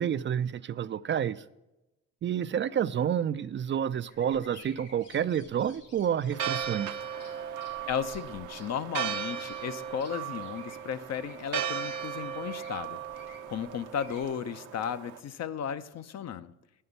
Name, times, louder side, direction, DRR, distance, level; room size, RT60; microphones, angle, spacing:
voice 1, 0.0-1.4 2.2-6.9, right 9 dB, 40° right, 14 dB, 0.4 m, -29 dB
sound 1, 4.1-14.3, left 2 dB, 80° left, 2.8 m, -55 dB
Church bell, 6.3-15.2, right 8 dB, 80° right, 0.9 m, -36 dB
voice 2, 7.9-16.5, left 8 dB, 60° left, 12 dB, 0.7 m, -35 dB
10.0 x 5.6 x 8.0 m, 0.96 s
cardioid pair, 90°, 30 cm